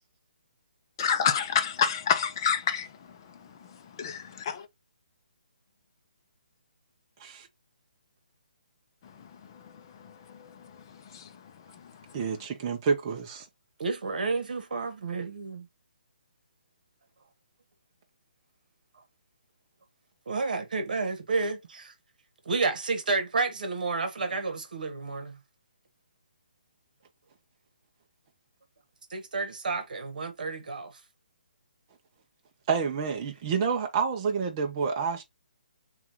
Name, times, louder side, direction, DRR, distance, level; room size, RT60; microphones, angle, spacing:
voice 1, 1.0-2.9 4.0-4.6 11.1-11.2, left 7 dB, 25° left, 0.6 m, -27 dB
voice 2, 12.1-13.5 32.7-35.2, right 5 dB, 20° right, 0.7 m, -28 dB
voice 3, 13.8-15.7 20.3-21.9 22.4-25.4 29.1-30.9, right 3 dB, 60° right, 1.4 m, -30 dB
7.1 x 2.5 x 3.0 m
hypercardioid pair, 170°, 5 cm